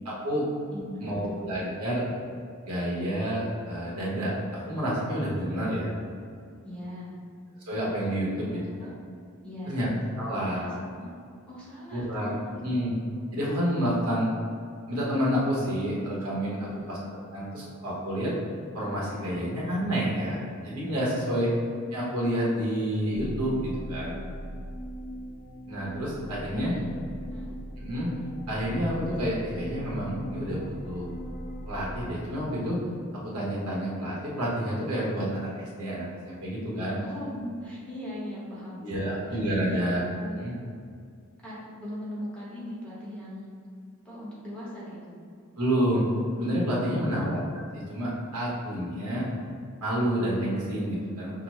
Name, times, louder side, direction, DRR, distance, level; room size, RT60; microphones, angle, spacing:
voice 1, 0.0-0.5 1.0-2.0 2.7-5.9 7.7-8.6 9.7-9.9 10.1-10.8 11.9-12.3 12.6-12.9 13.3-14.3 14.9-17.0 17.3-18.3 18.7-21.5 21.9-24.2 25.7-26.7 27.8-28.1 28.5-31.1 31.7-32.8 33.2-36.9 38.8-40.0 40.3-40.5 45.6-46.1 46.4-47.4 47.7-49.3 49.8-51.4, equal, 90° right, -5 dB, 1.1 m, -29 dB
voice 2, 0.7-1.4 5.6-5.8 6.6-7.2 8.4-8.9 9.4-9.8 10.3-11.1 11.5-12.4 12.6-12.7 16.7-16.9 26.5-26.8 27.3-27.5 36.9-39.8 40.2-40.3 41.4-43.5 44.0-45.1, equal, 5° left, -9 dB, 0.9 m, -39 dB
sound 1, 23.1-32.1, equal, 35° left, 1.2 m, -39 dB
5.9 x 2.1 x 3.1 m, 2.3 s
head